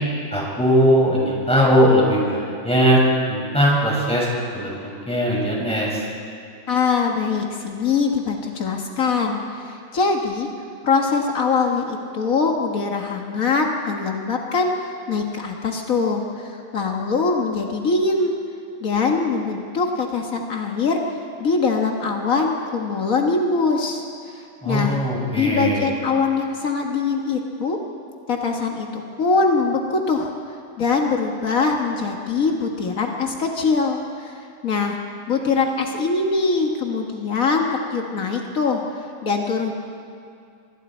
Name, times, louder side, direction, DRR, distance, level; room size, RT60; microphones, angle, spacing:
voice 1, 0.3-3.0 3.3-4.3 4.5-4.8 5.1-6.0 24.6-25.9, equal, 5° left, -4 dB, 5.9 m, -19 dB
voice 2, 6.7-10.5 10.8-18.3 18.8-21.0 21.4-24.0 24.3-25.0 25.4-27.8 28.3-30.3 30.8-35.0 35.3-38.8 39.2-39.7, left 4 dB, 80° left, 2 dB, 1.9 m, -22 dB
25.5 x 25.0 x 4.4 m, 2.5 s
omnidirectional pair, 1.4 m